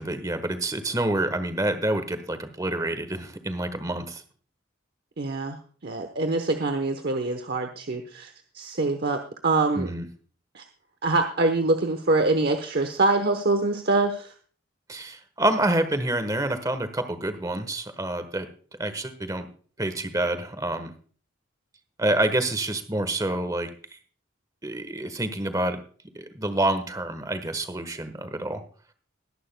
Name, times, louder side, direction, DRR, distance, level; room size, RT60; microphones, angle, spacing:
voice 1, 0.0-4.2 9.7-10.1 14.9-18.5 18.8-19.5 19.8-20.9 22.0-23.7 24.6-25.8 26.1-28.6, right 1 dB, 15° right, 10 dB, 1.2 m, -27 dB
voice 2, 5.2-9.9 10.5-10.6 11.0-14.3, right 2 dB, 50° right, 6 dB, 1.0 m, -25 dB
21.0 x 11.0 x 2.2 m, 0.42 s
head